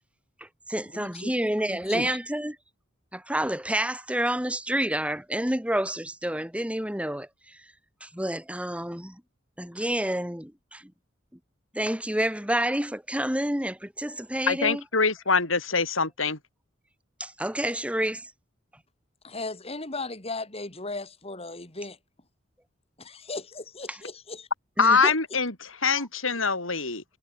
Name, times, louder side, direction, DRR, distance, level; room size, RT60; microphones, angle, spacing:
voice 1, 0.4-2.6 3.1-7.7 8.0-9.2 9.6-10.9 11.7-14.8 17.2-18.3 23.9-24.0 24.8-25.1, right 1 dB, 5° right, 4.3 m, -29 dB
voice 2, 0.9-1.3 1.7-2.1 19.2-22.0 23.0-24.5, left 2 dB, 30° left, 4.1 m, -36 dB
voice 3, 14.5-16.4 24.8-27.0, left 4 dB, 85° left, 6.4 m, -24 dB
head